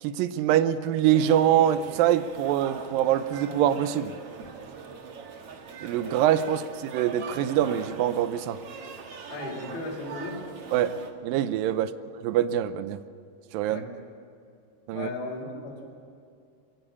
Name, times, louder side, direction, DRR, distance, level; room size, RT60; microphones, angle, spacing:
voice 1, 0.0-4.1 5.8-8.6 10.7-11.0 11.2-11.9 12.2-13.0 13.5-13.8 14.9-15.1, right 11 dB, 80° right, 12 dB, 2.1 m, -24 dB
sound 1, 1.1-11.1, right 5 dB, 55° right, 1.7 m, -42 dB
voice 2, 9.3-10.4 11.7-11.8 13.7-13.8 14.9-15.8, left 3 dB, 90° left, -1 dB, 6.4 m, -36 dB
22.5 x 17.0 x 8.5 m, 2.4 s
omnidirectional pair, 4.8 m